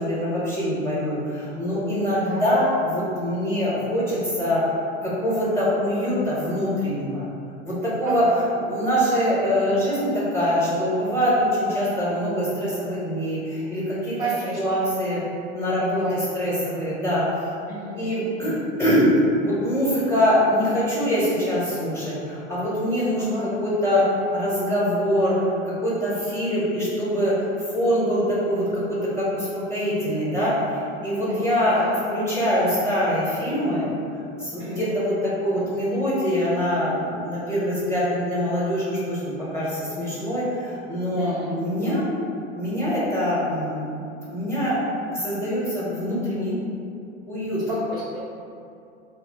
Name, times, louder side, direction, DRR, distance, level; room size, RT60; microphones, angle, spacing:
voice 1, 0.0-4.6 5.0-7.3 7.6-8.2 8.7-14.1 14.5-15.2 15.5-17.3 17.9-19.1 19.4-25.4 25.6-27.4 27.7-31.8 32.1-33.9 34.4-42.0 42.5-43.9 44.3-44.8 45.1-46.6 47.3-47.6, equal, 5° left, -8 dB, 1.1 m, -24 dB
voice 2, 8.0-8.4 14.2-14.9 15.8-16.2 17.7-18.1 23.3-23.4 31.3-31.9 34.6-34.9 41.1-41.5 47.7-48.2, right 2 dB, 10° right, -8 dB, 0.4 m, -32 dB
3.0 x 2.2 x 4.0 m, 2.6 s
figure-of-eight pair, 80°, 36 cm